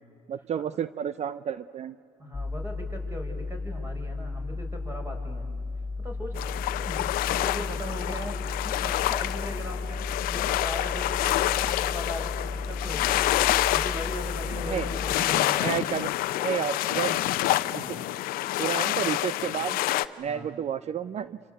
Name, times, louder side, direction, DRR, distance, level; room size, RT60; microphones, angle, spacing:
voice 1, 0.3-2.0 14.7-14.9 15.6-16.1 16.4-17.2 17.7-17.8 18.6-19.8 20.2-21.4, right 8 dB, 45° right, 15 dB, 0.7 m, -31 dB
voice 2, 2.2-5.5 6.0-13.4 13.7-15.9 17.7-18.1 20.3-20.5, equal, 15° right, 2 dB, 6.4 m, -39 dB
sound 1, 2.3-15.2, left 3 dB, 25° left, 0.9 m, -34 dB
sound 2, 6.4-20.1, left 15 dB, 70° left, 0.8 m, -28 dB
28.0 x 26.0 x 8.1 m, 2.2 s
supercardioid pair, 75°, 15 cm